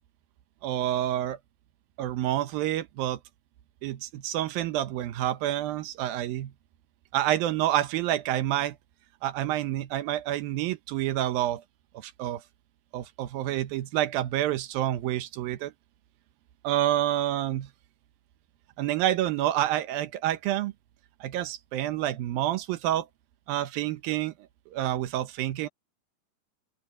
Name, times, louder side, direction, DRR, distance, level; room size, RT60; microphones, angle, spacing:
voice 1, 0.6-1.4 2.0-3.2 3.8-6.5 7.1-8.8 9.2-11.6 11.9-12.4 12.9-15.7 16.6-17.7 18.8-20.7 21.2-23.1 23.5-24.3 24.7-25.7, right 13 dB, 75° right, 2.5 m, -28 dB
open air
omnidirectional pair, 4.5 m